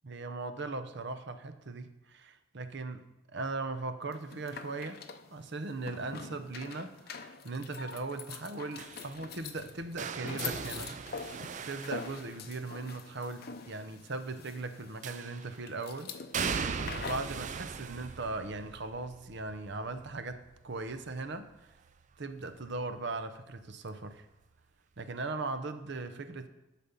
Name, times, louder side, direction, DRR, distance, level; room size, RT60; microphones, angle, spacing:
voice 1, 0.1-3.0 3.3-5.0 5.3-11.0 11.7-16.1 16.9-21.5 22.2-24.3 25.0-26.5, right 3 dB, 55° right, 9 dB, 0.7 m, -39 dB
sound 1, 4.1-17.4, left 5 dB, 45° left, 0.6 m, -45 dB
sound 2, 8.8-12.8 15.0-15.6 16.3-22.1 22.5-22.9 24.1-24.2, right 6 dB, 35° right, 0.4 m, -40 dB
11.5 x 4.2 x 6.9 m, 0.97 s
head